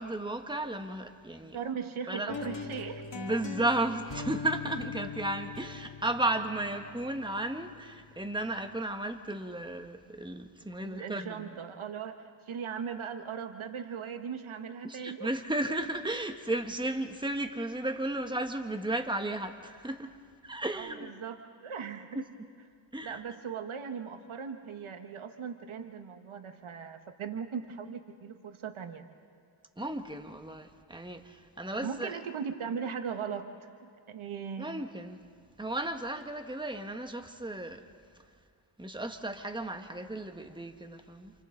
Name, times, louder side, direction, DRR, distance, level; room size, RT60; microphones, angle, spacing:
voice 1, 0.0-1.6 2.1-2.3 3.1-11.6 14.8-20.1 20.4-21.1 22.9-23.2 29.8-32.2 34.6-35.2 35.6-37.8 38.8-41.3, right 1 dB, 10° right, 6 dB, 1.5 m, -34 dB
voice 2, 1.5-3.0 10.8-12.2 12.5-15.4 20.7-22.3 23.0-29.0 31.8-34.7, right 7 dB, 75° right, 7 dB, 1.4 m, -39 dB
sound 1, 2.3-8.3, left 5 dB, 60° left, 2.5 m, -42 dB
28.5 x 28.0 x 3.9 m, 2.2 s
cardioid pair, 60°, 48 cm